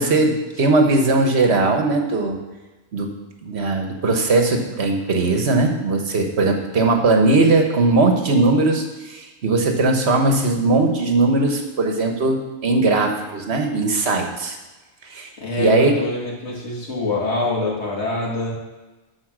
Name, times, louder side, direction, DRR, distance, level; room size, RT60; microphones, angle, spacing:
voice 1, 0.0-2.4 2.9-3.1 3.4-14.6 15.0-15.3 15.6-15.9, right 2 dB, 70° right, 3 dB, 1.4 m, -19 dB
voice 2, 15.4-18.5, left 2 dB, 90° left, -3 dB, 2.5 m, -25 dB
11.5 x 4.7 x 6.1 m, 1.2 s
omnidirectional pair, 1.1 m